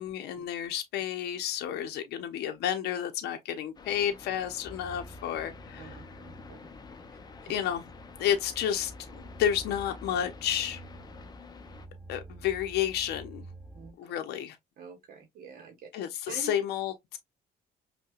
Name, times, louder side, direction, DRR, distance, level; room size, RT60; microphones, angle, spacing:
voice 1, 0.0-6.0 7.5-7.8 8.2-10.8 12.1-13.5 14.0-14.6 15.9-17.2, left 10 dB, 75° left, 0.6 m, -31 dB
sound 1, 3.8-11.9, left 5 dB, 25° left, 0.5 m, -49 dB
sound 2, 4.6-13.9, right 1 dB, ahead, 0.9 m, -49 dB
voice 2, 5.8-6.7 7.4-7.5 13.7-13.9 14.8-15.9 16.3-16.5, right 6 dB, 60° right, 0.9 m, -46 dB
5.3 x 2.2 x 2.3 m
cardioid pair, 110°, 17 cm